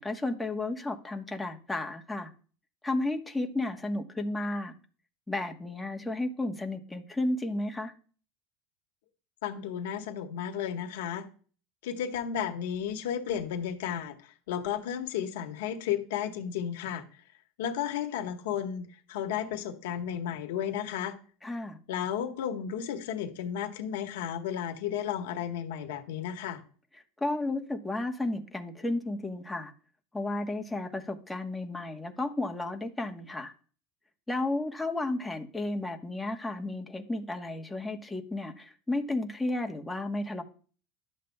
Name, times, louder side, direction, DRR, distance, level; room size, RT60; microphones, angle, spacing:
voice 1, 0.0-2.3 2.8-4.7 5.3-7.9 21.4-21.8 27.2-29.7 30.1-33.5 34.3-40.4, left 2 dB, 10° left, 3 dB, 1.2 m, -33 dB
voice 2, 9.4-11.2 11.8-17.0 17.6-21.1 21.9-26.6, left 9 dB, 75° left, 4 dB, 1.3 m, -33 dB
12.0 x 7.3 x 2.3 m, 0.41 s
hypercardioid pair, 95°, 0 cm